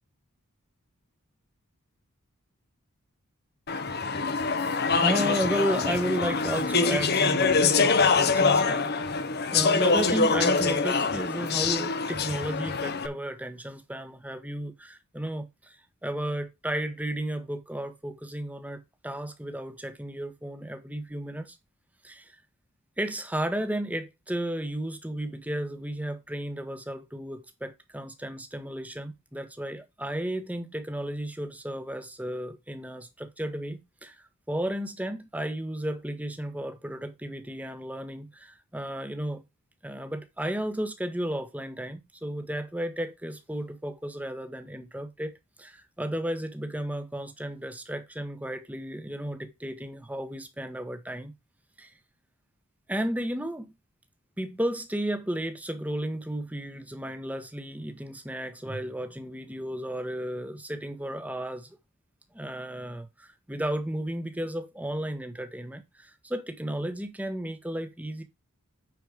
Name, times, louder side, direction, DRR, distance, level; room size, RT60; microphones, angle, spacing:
Speech / Chatter, 3.7-13.1, left 4 dB, 45° left, 0.9 m, -24 dB
voice 1, 5.0-8.9 9.5-21.6 22.0-22.4 23.0-39.4 39.8-51.3 51.8-51.9 52.9-53.7 54.4-61.7 62.3-68.2, right 1 dB, 5° right, 1.2 m, -33 dB
9.5 x 4.5 x 5.0 m
head